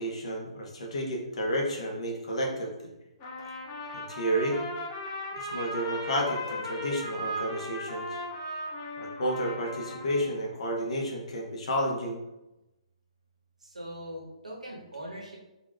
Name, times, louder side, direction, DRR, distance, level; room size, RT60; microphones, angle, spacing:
voice 1, 0.0-2.7 3.9-4.6 5.4-8.1 9.0-12.2, equal, 60° left, -1 dB, 1.1 m, -31 dB
Trumpet, 3.2-10.3, left 1 dB, 30° left, 1.1 m, -37 dB
voice 2, 13.6-15.4, equal, 80° right, -2 dB, 1.2 m, -41 dB
4.1 x 3.5 x 2.4 m, 0.97 s
figure-of-eight pair, 130°, 4 cm